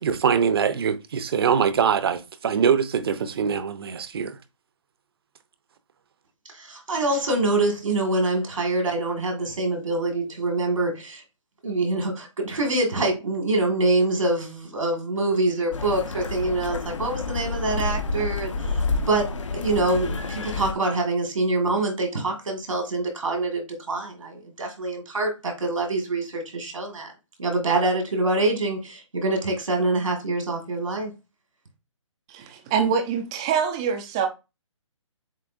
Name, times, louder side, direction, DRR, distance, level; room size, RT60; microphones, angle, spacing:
voice 1, 0.0-4.4, right 7 dB, 50° right, 0.7 m, -23 dB
voice 2, 6.5-11.2 11.6-18.5 19.1-27.1 27.4-31.1, right 2 dB, 85° right, 2.2 m, -25 dB
sound 1, 15.7-20.7, left 3 dB, 70° left, 0.9 m, -29 dB
voice 3, 32.3-34.3, right 7 dB, 10° right, 0.3 m, -25 dB
7.5 x 2.7 x 2.6 m
hypercardioid pair, 160°, 17 cm